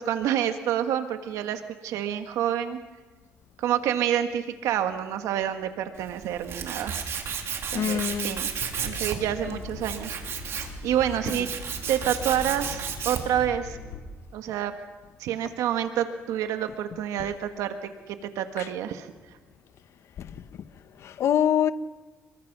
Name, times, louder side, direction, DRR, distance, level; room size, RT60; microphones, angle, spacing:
voice 1, 0.0-2.8 3.6-7.0 7.7-8.5 8.8-10.4 10.8-11.5 11.9-13.8 14.3-14.7 15.2-19.1, right 10 dB, 80° right, 1.5 m, -28 dB
Tools, 5.9-13.4, right 7 dB, 55° right, 3.3 m, -33 dB
voice 2, 7.7-8.4 9.5-9.6 18.6-18.7 20.2-20.3 21.0-21.7, left 9 dB, 60° left, 1.0 m, -25 dB
sound 1, 8.6-14.0, left 3 dB, 75° left, 6.5 m, -41 dB
28.5 x 22.5 x 6.1 m
cardioid pair, 120°, 5 cm